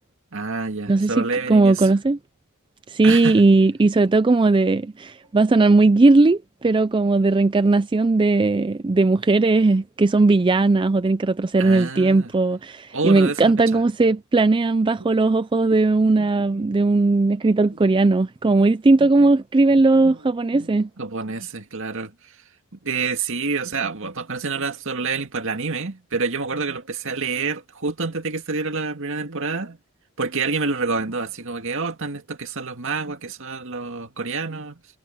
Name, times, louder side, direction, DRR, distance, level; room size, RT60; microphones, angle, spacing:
voice 1, 0.3-1.9 3.0-3.4 11.6-12.3 12.9-13.8 15.0-15.1 16.2-16.7 19.0-19.3 19.9-20.2 20.5-22.4 22.8-29.8 30.2-34.8, right 4 dB, 60° right, 2.1 m, -28 dB
voice 2, 0.9-2.2 2.9-20.9, right 3 dB, 20° right, 0.4 m, -18 dB
head